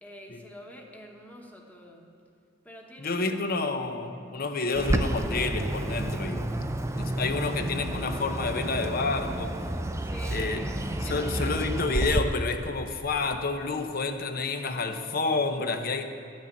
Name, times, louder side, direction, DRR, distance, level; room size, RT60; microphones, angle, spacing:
voice 1, 0.0-2.1 2.6-3.4 10.0-10.6 11.0-11.7, equal, 10° left, 0 dB, 1.2 m, -46 dB
voice 2, 3.0-6.4 7.0-9.5 10.3-10.7 11.0-16.1, left 3 dB, 55° left, 7 dB, 0.8 m, -29 dB
Bird, 4.7-12.2, right 1 dB, 15° right, 0.4 m, -30 dB
12.0 x 6.3 x 8.6 m, 2.3 s
head